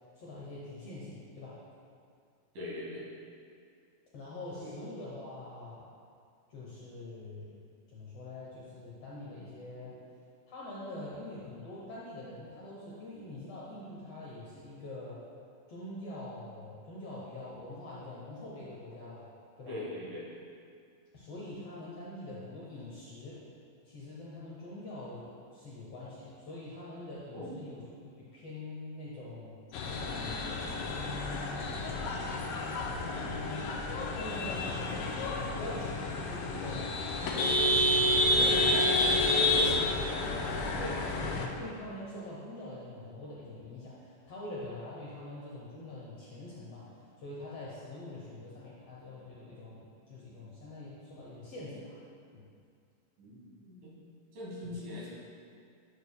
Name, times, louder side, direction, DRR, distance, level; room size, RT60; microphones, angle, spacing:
voice 1, 0.1-1.6 4.1-5.8 6.5-7.5 7.9-9.9 10.5-15.2 15.7-19.2 19.6-19.7 21.1-23.4 23.9-27.8 28.2-29.6 30.2-31.7 32.9-35.2 35.5-37.9 38.2-39.7 40.8-52.0 52.3-52.4 54.6-54.8, left 2 dB, 70° left, -7 dB, 1.5 m, -44 dB
voice 2, 2.5-3.1 4.6-4.7 19.7-20.3 27.3-27.6 33.0-33.6 39.5-39.9 48.1-48.2 53.2-53.9 54.3-55.1, left 1 dB, 75° right, -6 dB, 3.3 m, -41 dB
sound 1, 29.7-41.5, left 1 dB, 90° left, 2.3 m, -30 dB
10.5 x 6.5 x 2.2 m, 2.3 s
omnidirectional pair, 3.9 m